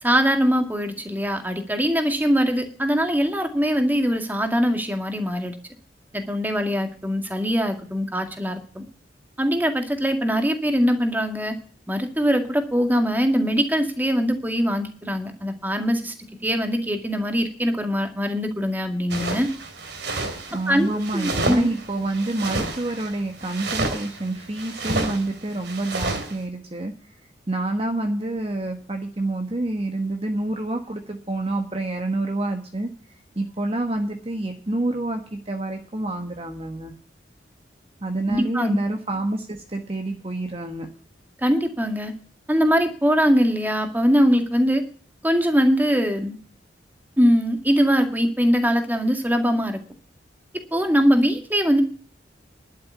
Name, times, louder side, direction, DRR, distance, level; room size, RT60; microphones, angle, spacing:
voice 1, 0.0-5.5 6.1-8.8 9.4-11.5 11.9-16.1 16.4-19.5 20.7-21.7 38.3-38.8 41.4-42.1 42.5-44.8 45.2-46.4 47.2-49.8 50.7-51.8, equal, 10° right, 5 dB, 2.1 m, -22 dB
sound 1, 19.1-26.3, right 2 dB, 65° right, 2.9 m, -30 dB
voice 2, 20.5-26.9 27.5-32.9 33.3-36.9 38.0-40.9, right 2 dB, 30° right, 4 dB, 1.4 m, -28 dB
11.5 x 7.9 x 8.2 m, 0.43 s
head